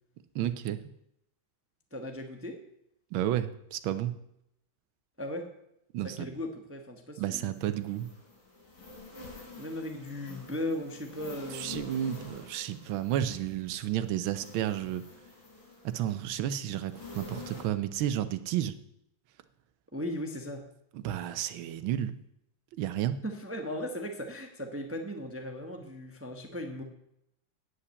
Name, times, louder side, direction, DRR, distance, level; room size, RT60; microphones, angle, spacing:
voice 1, 0.3-0.8 3.1-4.1 5.9-6.3 7.2-8.1 11.5-15.0 15.8-18.7 20.9-22.1 22.8-23.2, right 11 dB, 90° right, 12 dB, 1.5 m, -31 dB
voice 2, 1.9-2.6 5.2-5.5 6.0-7.8 9.6-11.8 19.9-20.7 23.2-26.8, left 1 dB, 10° right, 4 dB, 0.7 m, -37 dB
sound 1, 7.5-17.6, left 3 dB, 80° left, 4.0 m, -48 dB
9.7 x 5.7 x 8.0 m, 0.77 s
omnidirectional pair, 2.1 m